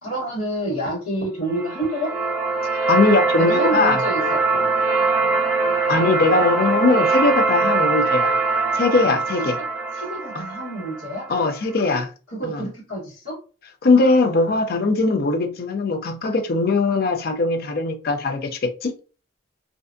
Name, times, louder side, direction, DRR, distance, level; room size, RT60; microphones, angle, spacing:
voice 1, 0.0-2.1 3.4-4.7 9.4-9.5 9.9-11.3 11.9-12.0 12.3-13.4, right 1 dB, 75° left, 1.3 m, -28 dB
sound 1, 1.5-11.6, right 3 dB, 10° right, 0.9 m, -22 dB
voice 2, 2.9-4.0 5.9-8.3 8.7-9.6 10.3-10.4 11.3-12.1 12.4-12.6 13.8-18.9, left 3 dB, 50° left, 0.4 m, -20 dB
2.5 x 2.2 x 2.5 m
head